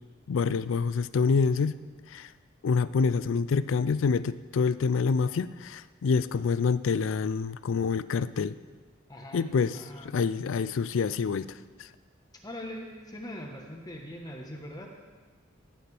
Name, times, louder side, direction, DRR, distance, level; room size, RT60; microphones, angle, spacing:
voice 1, 0.3-1.8 2.1-2.3 2.6-8.5 9.3-9.8 10.0-11.6, left 5 dB, 75° left, 16 dB, 0.4 m, -26 dB
voice 2, 9.1-9.4 9.7-10.1 12.4-14.9, left 1 dB, 20° left, 1 dB, 1.1 m, -41 dB
16.0 x 9.2 x 3.4 m, 1.4 s
head